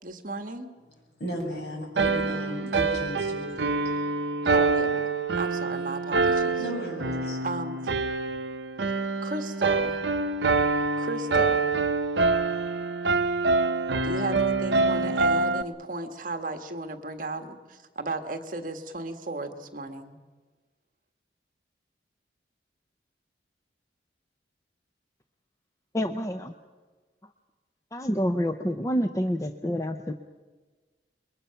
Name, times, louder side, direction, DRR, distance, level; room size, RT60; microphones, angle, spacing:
voice 1, 0.0-0.7 4.5-6.6 7.4-8.0 9.2-10.0 11.0-11.7 14.0-20.2, right 2 dB, 45° right, 6 dB, 1.5 m, -35 dB
voice 2, 1.2-3.9 6.6-7.4, equal, 65° left, 0 dB, 7.1 m, -35 dB
sound 1, 2.0-15.6, right 3 dB, 65° right, 0.8 m, -26 dB
voice 3, 25.9-26.5 27.9-30.1, equal, 15° left, 7 dB, 0.6 m, -28 dB
28.0 x 22.5 x 5.8 m, 1.3 s
head